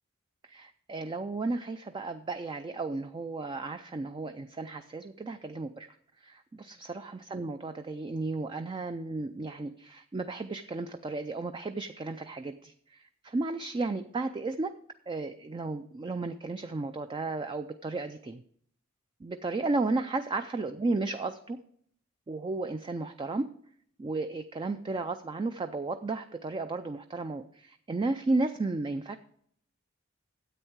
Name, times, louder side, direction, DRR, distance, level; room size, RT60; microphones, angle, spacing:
voice 1, 0.4-5.9 6.2-14.7 15.1-18.4 19.2-21.6 22.3-23.5 24.0-29.2, right 3 dB, 25° right, 8 dB, 0.3 m, -33 dB
9.9 x 8.0 x 4.6 m, 0.65 s
head